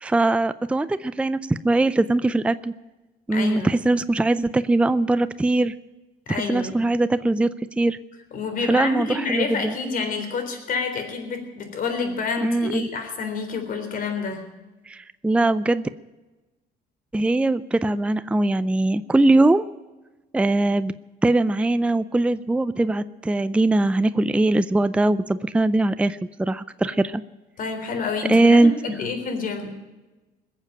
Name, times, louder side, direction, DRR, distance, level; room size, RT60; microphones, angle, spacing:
voice 1, 0.0-2.7 3.3-5.7 6.3-8.0 8.7-9.7 12.4-12.9 14.9-15.9 17.1-19.6 20.3-20.9 21.2-27.2 28.3-28.7, right 2 dB, 5° right, 13 dB, 0.4 m, -21 dB
voice 2, 3.3-3.7 6.3-6.9 8.3-14.4 27.6-29.7, left 4 dB, 55° left, 5 dB, 3.8 m, -28 dB
20.5 x 7.4 x 8.9 m, 1.1 s
cardioid pair, 110°, 17 cm